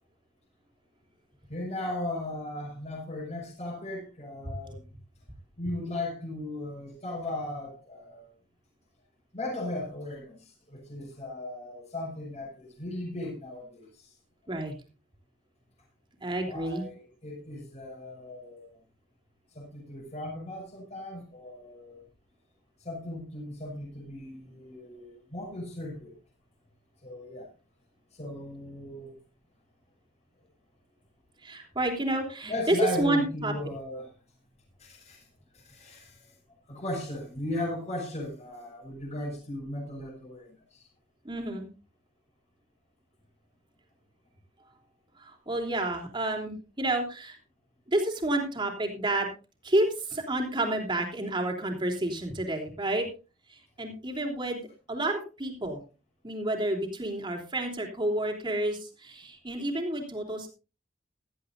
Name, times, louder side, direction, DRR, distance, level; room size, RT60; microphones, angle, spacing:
voice 1, 1.5-4.8 5.6-8.3 9.3-14.1 16.4-18.7 19.5-22.0 22.8-26.1 27.0-27.5 28.2-29.1 32.5-34.1 34.8-35.2 35.5-36.3 36.7-40.9, left 1 dB, 40° left, 6.3 m, -37 dB
voice 2, 16.2-16.8 31.4-33.5 41.2-41.7 45.2-47.4 47.9-49.3 49.6-53.1 53.5-54.6 54.9-55.8 56.2-60.5, right 1 dB, 25° right, 3.5 m, -30 dB
16.5 x 14.0 x 2.7 m
head